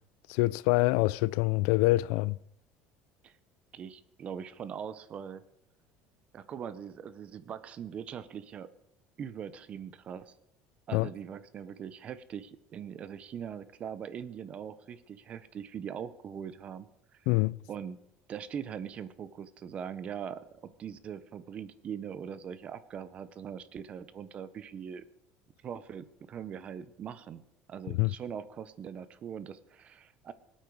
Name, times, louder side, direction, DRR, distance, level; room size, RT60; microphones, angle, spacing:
voice 1, 0.3-2.4 10.9-11.1 17.3-17.6 28.0-28.1, left 20 dB, 80° left, 0.4 m, -25 dB
voice 2, 3.7-5.4 6.3-8.7 9.2-10.3 10.9-16.9 17.7-18.0 18.3-25.0 25.6-27.4 27.7-30.3, right 8 dB, 30° right, 0.7 m, -41 dB
23.5 x 8.7 x 4.7 m
cardioid pair, 175°, 4 cm